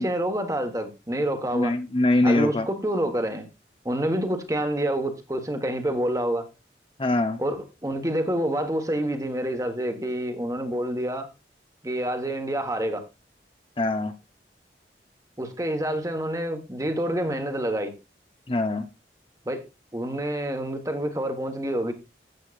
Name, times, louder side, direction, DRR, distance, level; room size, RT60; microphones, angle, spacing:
voice 1, 0.0-1.7 2.2-3.5 3.8-6.5 7.4-11.3 11.8-13.1 15.4-17.9 19.4-19.6 19.9-21.9, right 1 dB, 20° right, 1.3 m, -27 dB
voice 2, 1.5-2.7 7.0-7.4 13.8-14.1 18.5-18.9, left 2 dB, 30° left, 0.6 m, -23 dB
13.0 x 8.2 x 2.5 m
head